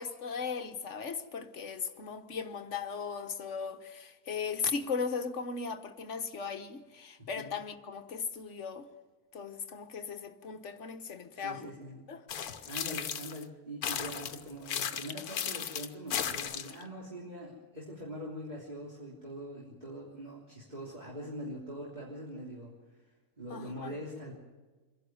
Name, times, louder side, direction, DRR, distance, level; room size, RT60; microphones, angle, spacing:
voice 1, 0.0-8.9 9.3-11.7 12.1-12.2 23.5-23.9, left 5 dB, 55° left, 1.5 m, -37 dB
voice 2, 11.3-12.1 12.6-22.7 23.4-24.3, equal, 30° right, 3.7 m, -43 dB
sound 1, 12.3-13.4 13.8-16.8, left 8 dB, 80° left, 1.5 m, -35 dB
26.0 x 11.5 x 9.3 m
omnidirectional pair, 1.5 m